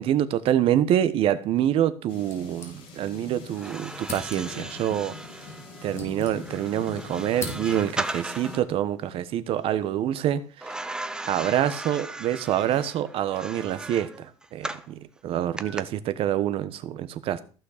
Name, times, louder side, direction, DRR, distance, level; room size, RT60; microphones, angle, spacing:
voice 1, 0.0-5.1 5.8-10.7 11.3-17.4, right 11 dB, 55° right, 1.2 m, -26 dB
sound 1, 2.1-8.6, left 4 dB, 50° left, 5.5 m, -42 dB
sound 2, 2.2-3.3 3.5-3.6 4.0-4.7 5.5-6.8 7.1-8.1, left 3 dB, 25° left, 3.8 m, -40 dB
sound 3, 3.5-8.7 10.6-14.9 15.6-15.8, right 2 dB, 5° right, 0.8 m, -37 dB
15.0 x 6.3 x 6.7 m
cardioid pair, 150°, 11 cm